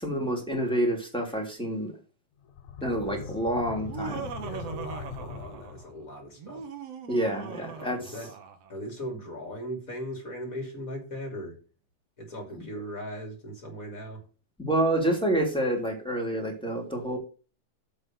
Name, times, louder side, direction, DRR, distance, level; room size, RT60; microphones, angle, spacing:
voice 1, 0.0-1.9 2.8-4.3 7.1-8.0 14.6-17.2, right 1 dB, ahead, -1 dB, 2.8 m, -28 dB
sound 1, 2.4-6.2, left 7 dB, 75° left, 2.4 m, -41 dB
voice 2, 2.8-3.3 4.4-6.7 7.6-8.3 8.7-11.6 12.2-14.2, equal, 25° left, 2 dB, 3.2 m, -39 dB
Laughter, 3.7-5.9 6.4-8.7, right 6 dB, 60° right, 2.0 m, -40 dB
8.0 x 5.3 x 7.6 m, 0.34 s
omnidirectional pair, 3.5 m